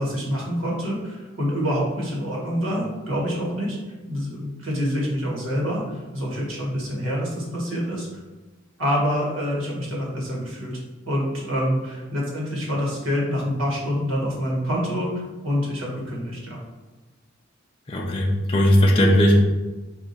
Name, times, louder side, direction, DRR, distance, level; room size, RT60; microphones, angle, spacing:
voice 1, 0.0-3.8 4.1-8.1 8.8-10.8 11.1-16.6, equal, 80° right, -3 dB, 1.4 m, -26 dB
voice 2, 17.9-19.4, equal, 25° left, -2 dB, 0.4 m, -17 dB
4.7 x 2.4 x 4.1 m, 1.2 s
head